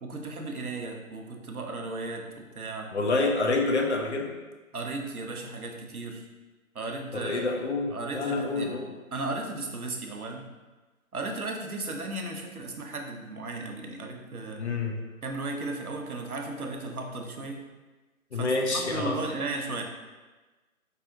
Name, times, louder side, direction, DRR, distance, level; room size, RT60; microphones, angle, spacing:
voice 1, 0.0-2.9 4.7-6.2 6.7-7.5 7.9-8.8 9.1-10.5 11.1-14.6 15.2-17.6 18.3-19.8, right 2 dB, 90° right, 3 dB, 0.7 m, -35 dB
voice 2, 2.9-4.3 7.1-8.9 14.6-14.9 18.3-19.2, left 3 dB, 50° left, 1 dB, 0.6 m, -27 dB
4.8 x 2.7 x 2.6 m, 1.2 s
figure-of-eight pair, 145°, 43 cm